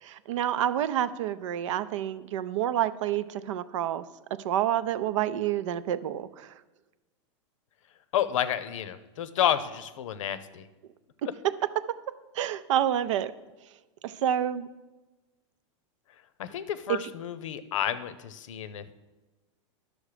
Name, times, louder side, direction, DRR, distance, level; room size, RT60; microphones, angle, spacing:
voice 1, 0.0-4.0 4.4-6.5 11.4-11.5 11.9-12.0 12.4-13.3 14.0-14.7 16.9-17.0, right 11 dB, 75° right, 14 dB, 0.5 m, -28 dB
voice 2, 8.1-10.6 16.4-18.9, left 10 dB, 80° left, 14 dB, 0.7 m, -30 dB
11.5 x 6.4 x 5.0 m, 1.2 s
supercardioid pair, 145°, 16 cm